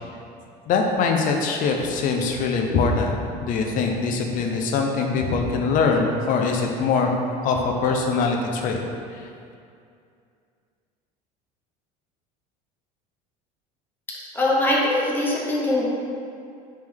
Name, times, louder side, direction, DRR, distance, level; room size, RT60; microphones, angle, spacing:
voice 1, 0.7-7.1 7.4-8.8 9.1-9.2, left 4 dB, 50° left, 2 dB, 0.5 m, -23 dB
voice 2, 14.3-15.8, left 1 dB, 10° left, -4 dB, 0.7 m, -22 dB
3.3 x 3.2 x 3.4 m, 2.4 s
cardioid pair, 120°, 18 cm